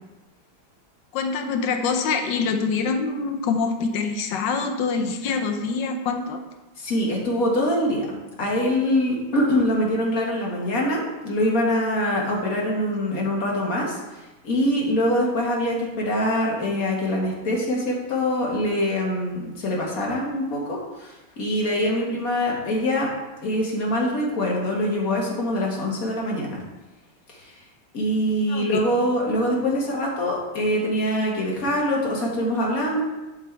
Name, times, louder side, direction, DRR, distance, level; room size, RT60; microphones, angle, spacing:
voice 1, 1.1-6.4 21.9-22.0 28.5-28.8, left 4 dB, 75° left, 5 dB, 1.5 m, -25 dB
voice 2, 6.8-14.0 14.4-23.1 23.4-26.6 27.3-27.5 27.9-33.0, left 1 dB, 50° left, -2 dB, 2.0 m, -24 dB
11.0 x 4.1 x 4.5 m, 1.1 s
omnidirectional pair, 2.0 m